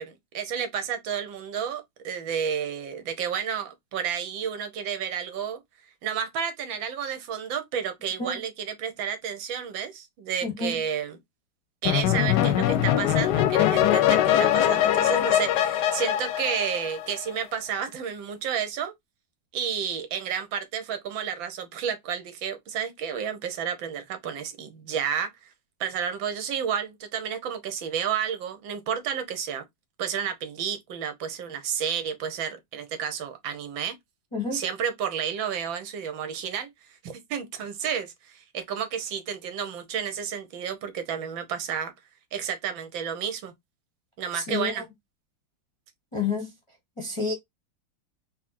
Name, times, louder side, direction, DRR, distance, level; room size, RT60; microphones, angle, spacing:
voice 1, 0.0-5.6 6.0-11.2 11.8-18.9 19.5-25.3 25.8-29.6 30.0-34.0 34.5-36.7 37.0-41.9 42.3-43.5 44.2-44.8, right 8 dB, 80° right, 1.6 m, -31 dB
voice 2, 10.4-10.8 34.3-34.6 44.3-44.7 46.1-46.5 47.0-47.3, left 4 dB, 25° left, 0.8 m, -29 dB
sound 1, 11.8-17.3, left 11 dB, 70° left, 1.0 m, -22 dB
4.2 x 2.5 x 4.2 m
omnidirectional pair, 2.1 m